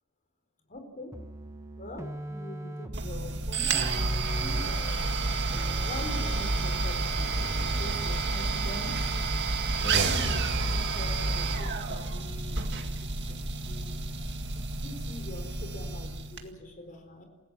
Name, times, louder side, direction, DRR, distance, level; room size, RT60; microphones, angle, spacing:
voice 1, 0.7-1.1 1.8-5.1 5.8-8.9 9.8-13.4 13.7-14.0 14.8-17.2, left 1 dB, 35° left, 5 dB, 4.3 m, -43 dB
sound 1, 1.1-8.3, right 1 dB, 15° right, 1.3 m, -40 dB
sound 2, 2.9-16.4, right 3 dB, 50° right, 2.0 m, -30 dB
sound 3, 4.9-12.7, equal, 90° left, 3.8 m, -50 dB
28.5 x 16.0 x 7.5 m, 1.3 s
head